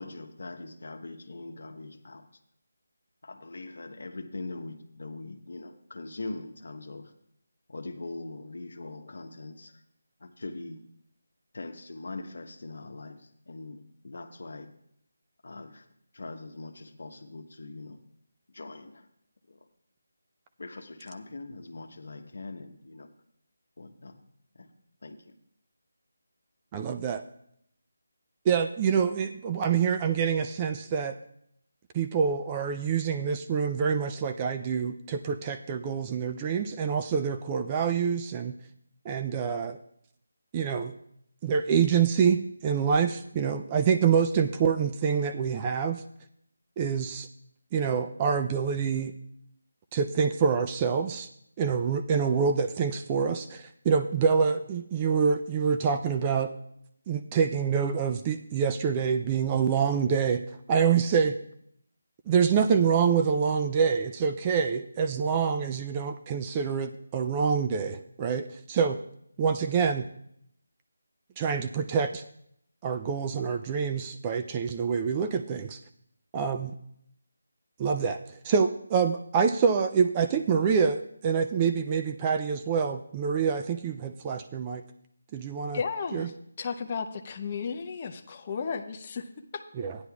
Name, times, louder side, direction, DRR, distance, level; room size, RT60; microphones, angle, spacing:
voice 1, 0.0-2.2 3.2-7.1 7.7-9.7 10.2-10.8 11.5-14.7 15.4-15.8 16.1-18.0 18.5-19.1 19.5-19.7 20.6-23.1 23.8-24.2 24.6-24.7 25.0-25.2, left 2 dB, 70° left, 7 dB, 0.9 m, -41 dB
voice 2, 26.7-27.2 28.5-31.2 31.9-38.6 39.1-39.8 40.5-40.9 41.4-46.0 46.8-47.3 47.7-49.1 49.9-51.3 51.6-56.5 57.1-60.4 60.7-61.4 62.3-69.0 69.4-70.1 71.4-72.2 72.8-75.8 76.3-76.7 77.8-84.8 85.3-85.8 86.1-86.3 89.8-90.0, right 6 dB, 20° right, 7 dB, 0.3 m, -26 dB
voice 3, 85.7-86.3 86.6-89.6, left 5 dB, 30° left, 5 dB, 0.6 m, -34 dB
14.5 x 9.6 x 2.3 m, 0.72 s
figure-of-eight pair, 165°, 0 cm